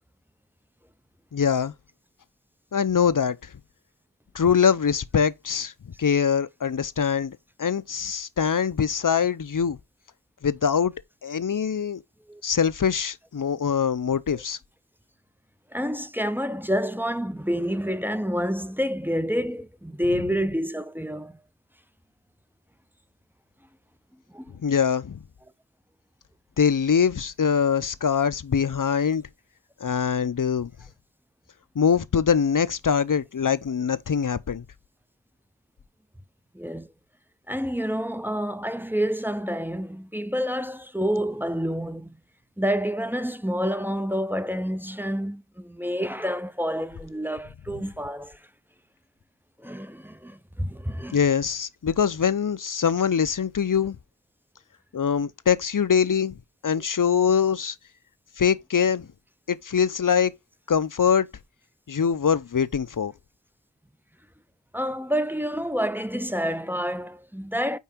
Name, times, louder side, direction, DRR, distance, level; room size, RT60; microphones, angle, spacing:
voice 1, 1.3-1.7 2.7-3.5 4.3-5.7 6.0-9.8 10.4-10.9 11.2-12.0 12.4-14.6 24.6-25.2 26.6-29.2 29.8-30.7 31.8-34.6 51.1-54.0 54.9-56.3 56.6-57.7 58.4-59.1 59.5-60.3 60.7-61.3 61.9-63.1, left 7 dB, 45° left, 0.6 m, -23 dB
voice 2, 15.7-21.3 24.3-24.5 36.5-36.9 37.5-42.1 42.6-48.4 49.6-51.2 64.7-67.8, equal, 5° right, 0.5 m, -28 dB
5.5 x 4.6 x 4.4 m
wide cardioid pair, 45°, 46 cm